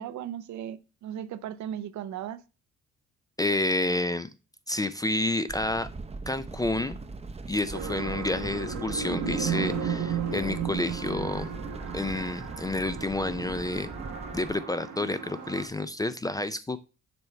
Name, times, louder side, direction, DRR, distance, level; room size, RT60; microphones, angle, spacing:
voice 1, 0.0-2.4, right 10 dB, 70° right, 0.6 m, -36 dB
voice 2, 3.4-4.3 4.7-5.9 6.3-7.0 7.5-11.5 11.9-13.9 14.3-16.8, left 2 dB, 15° left, 0.3 m, -29 dB
sound 1, 5.5-14.6, right 3 dB, 20° right, 0.6 m, -41 dB
sound 2, 7.7-15.7, right 6 dB, 85° right, 1.4 m, -34 dB
6.9 x 3.2 x 4.3 m
cardioid pair, 90°, 30 cm